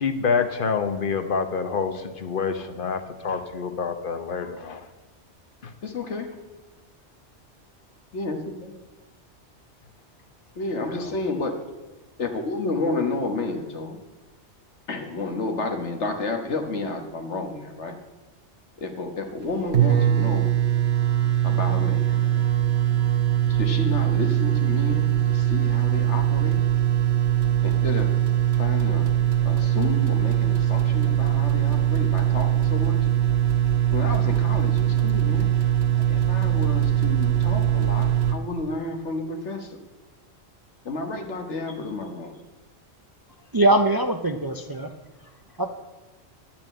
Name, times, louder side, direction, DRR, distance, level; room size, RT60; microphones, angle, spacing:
voice 1, 0.0-4.8 5.6-5.7 10.9-11.1, left 5 dB, 50° left, 9 dB, 1.1 m, -27 dB
voice 2, 5.8-6.4 8.1-8.7 10.6-11.6 12.2-14.0 14.9-17.9 18.8-20.5 21.4-22.5 23.5-26.6 27.6-28.2 28.6-29.1 29.5-33.0 33.9-35.7 36.1-39.8 40.9-42.4, left 3 dB, 75° left, 4 dB, 1.7 m, -31 dB
sound 1, 19.4-19.5 19.7-38.3, right 11 dB, 65° right, 1.3 m, -21 dB
voice 3, 43.5-44.9 45.6-45.7, right 1 dB, 25° right, 6 dB, 0.5 m, -21 dB
11.0 x 5.9 x 8.6 m, 1.2 s
omnidirectional pair, 1.2 m